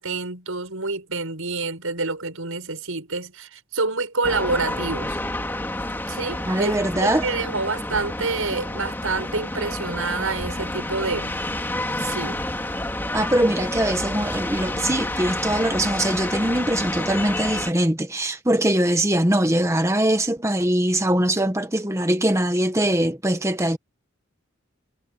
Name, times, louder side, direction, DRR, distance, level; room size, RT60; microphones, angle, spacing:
voice 1, 0.0-5.2 6.1-11.3 12.0-12.4, right 3 dB, 85° right, 6.2 m, -27 dB
sound 1, 4.2-17.7, left 1 dB, 10° left, 2.6 m, -29 dB
voice 2, 6.5-7.3 13.1-23.8, right 1 dB, 15° right, 1.5 m, -22 dB
head